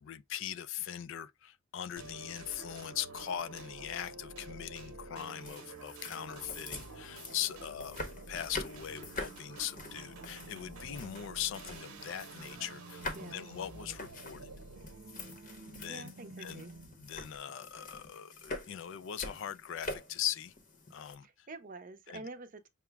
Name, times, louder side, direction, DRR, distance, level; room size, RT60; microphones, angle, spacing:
voice 1, 0.0-8.0 8.3-14.5 15.7-16.1 16.4-16.7 17.0-20.5 20.9-21.5 22.1-22.2, left 10 dB, 60° left, 0.3 m, -40 dB
sound 1, 2.0-17.1, right 3 dB, 90° right, 0.8 m, -49 dB
sound 2, 5.3-21.1, left 2 dB, 40° left, 0.8 m, -46 dB
voice 2, 13.1-13.5 15.9-16.7 21.2-22.7, right 2 dB, 40° right, 0.5 m, -47 dB
5.7 x 2.0 x 3.3 m
head